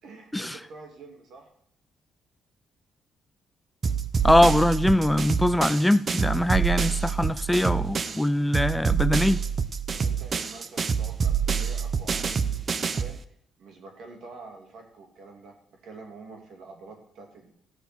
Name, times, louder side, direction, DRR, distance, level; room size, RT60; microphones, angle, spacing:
voice 1, 0.0-1.5 9.9-13.2 13.6-17.5, right 3 dB, 75° right, 2.9 m, -47 dB
sound 1, 3.8-8.2 8.5-13.2, right 6 dB, 45° right, 0.7 m, -27 dB
voice 2, 4.2-9.4, left 1 dB, 10° left, 0.4 m, -22 dB
14.5 x 6.9 x 6.2 m
cardioid pair, 90°, 0 cm